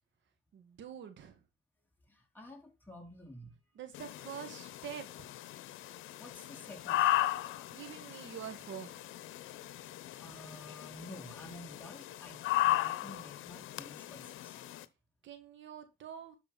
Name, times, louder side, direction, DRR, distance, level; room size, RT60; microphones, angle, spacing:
voice 1, 0.5-1.4 3.8-5.3 7.7-9.0 15.2-16.4, right 8 dB, 70° right, 2.0 m, -46 dB
voice 2, 2.1-3.6 6.2-7.3 10.2-14.6, left 1 dB, 10° left, 4.7 m, -51 dB
sound 1, 3.9-14.9, left 14 dB, 85° left, 0.8 m, -36 dB
12.0 x 4.6 x 5.5 m
cardioid pair, 90°, 20 cm